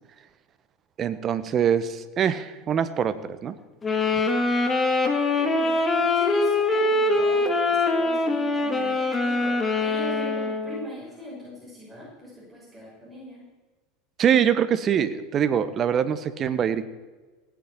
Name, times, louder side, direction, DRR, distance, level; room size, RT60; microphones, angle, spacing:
voice 1, 1.0-3.6 14.2-16.8, right 8 dB, 35° right, 13 dB, 1.1 m, -24 dB
sound 1, 3.8-10.9, left 2 dB, 20° left, 2.1 m, -23 dB
voice 2, 5.4-5.8 6.1-13.4, equal, 5° left, -6 dB, 5.8 m, -40 dB
17.0 x 8.8 x 7.2 m, 1.3 s
hypercardioid pair, 80°, 0 cm